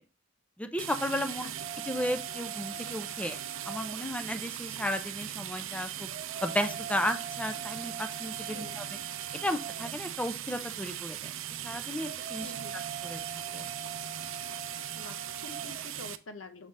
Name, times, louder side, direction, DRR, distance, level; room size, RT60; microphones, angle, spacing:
voice 1, 0.6-1.5 1.9-3.4 3.7-6.1 6.4-8.8 9.4-11.2 11.5-12.5 13.0-13.2 13.5-13.7, left 1 dB, 5° left, 8 dB, 0.5 m, -34 dB
sound 1, 0.8-16.2, right 11 dB, 85° right, 0.5 m, -39 dB
voice 2, 1.4-1.9 8.5-8.8 12.4-12.8 14.9-16.7, left 3 dB, 85° left, 9 dB, 0.8 m, -47 dB
sound 2, 1.6-16.0, right 5 dB, 35° right, 1.1 m, -45 dB
6.2 x 3.7 x 4.1 m, 0.33 s
head